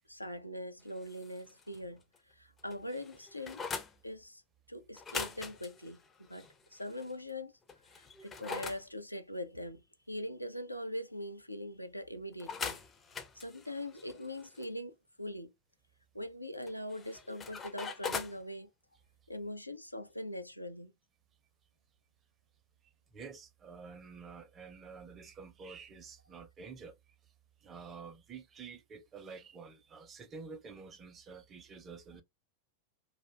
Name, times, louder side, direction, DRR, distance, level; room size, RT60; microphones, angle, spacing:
voice 1, 0.1-3.6 4.0-4.4 4.7-6.0 6.3-7.5 7.9-9.8 10.1-12.8 13.3-15.5 16.1-18.7 19.3-20.9, left 1 dB, 85° left, 0.4 m, -42 dB
sound 1, 0.9-1.8 2.1-2.2 2.6-3.9 4.9-7.1 7.7-8.8 12.4-14.7 16.6-18.4, left 5 dB, 20° left, 0.5 m, -42 dB
voice 2, 23.1-27.0 27.6-32.2, right 5 dB, 25° right, 0.6 m, -49 dB
2.5 x 2.2 x 3.2 m
figure-of-eight pair, 90°, 0 cm